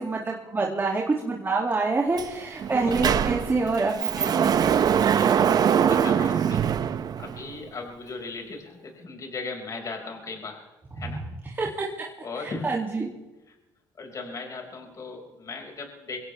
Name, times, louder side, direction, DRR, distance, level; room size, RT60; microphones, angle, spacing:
voice 1, 0.0-4.5 11.0-11.1 11.6-12.1 12.4-13.1, right 3 dB, 25° right, -2 dB, 2.5 m, -27 dB
Sliding door, 2.2-2.3 2.6-7.6, right 8 dB, 50° right, 0.8 m, -23 dB
voice 2, 5.1-6.6 7.2-10.7 11.0-11.2 12.2-12.7 13.5-13.6 14.0-16.2, left 4 dB, 40° left, 1 dB, 5.5 m, -37 dB
24.0 x 17.0 x 3.4 m, 1.0 s
supercardioid pair, 80°, 8 cm